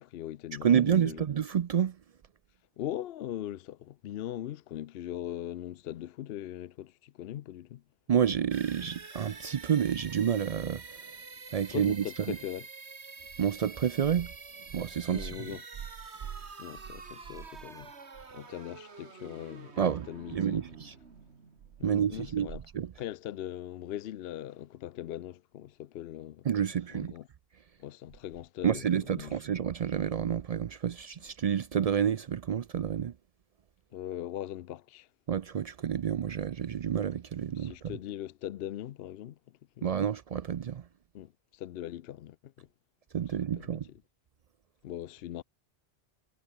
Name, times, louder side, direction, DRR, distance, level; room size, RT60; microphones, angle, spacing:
voice 1, 0.0-1.3 2.8-7.8 11.7-12.7 15.1-15.6 16.6-17.9 18.3-20.6 21.8-22.6 23.0-26.5 26.9-27.3 27.8-29.4 33.9-35.1 37.5-39.4 39.8-39.9 41.1-42.7 43.6-43.8 44.8-45.4, left 12 dB, 70° left, 0.8 m, -40 dB
voice 2, 0.6-2.0 8.1-11.0 11.5-12.4 13.4-14.3 14.7-15.6 19.8-20.1 20.3-20.9 21.8-22.5 22.7-22.9 26.5-27.1 28.6-33.1 35.3-37.9 39.8-40.8 43.1-43.9, right 8 dB, 55° right, 0.4 m, -29 dB
sound 1, 8.5-22.2, right 4 dB, 85° right, 2.4 m, -48 dB
omnidirectional pair, 1.1 m